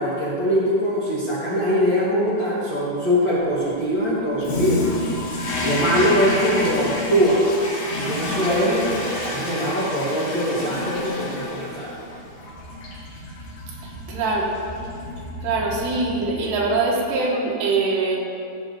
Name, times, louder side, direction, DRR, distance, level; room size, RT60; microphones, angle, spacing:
voice 1, 0.0-4.8 5.6-7.4 8.0-11.9, equal, 55° left, -8 dB, 1.3 m, -22 dB
Toilet flush, 4.4-16.7, left 2 dB, 70° left, 4.1 m, -29 dB
voice 2, 13.8-14.5 15.4-18.2, right 3 dB, 90° right, -3 dB, 3.8 m, -23 dB
15.5 x 7.9 x 3.9 m, 2.5 s
omnidirectional pair, 4.7 m